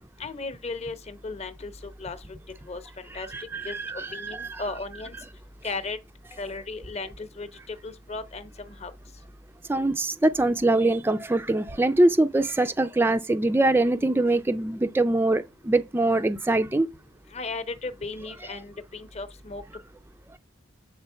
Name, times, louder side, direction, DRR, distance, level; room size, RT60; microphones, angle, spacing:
voice 1, 0.2-2.2 2.7-3.3 3.6-3.7 4.1-5.2 5.6-6.0 6.4-8.9 17.3-19.6, left 3 dB, 35° left, 0.9 m, -35 dB
voice 2, 3.3-4.6 9.7-16.9, right 2 dB, 10° right, 0.4 m, -23 dB
7.9 x 3.7 x 5.6 m
head